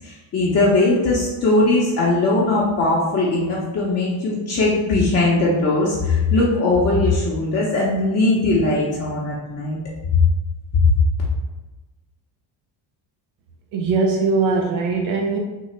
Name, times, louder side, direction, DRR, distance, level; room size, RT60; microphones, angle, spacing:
voice 1, 0.0-9.8 10.7-10.9, left 2 dB, 35° left, -6 dB, 0.6 m, -19 dB
voice 2, 13.7-15.4, right 4 dB, 80° right, 0 dB, 0.6 m, -20 dB
3.7 x 2.0 x 3.2 m, 1.1 s
cardioid pair, 115°, 45 cm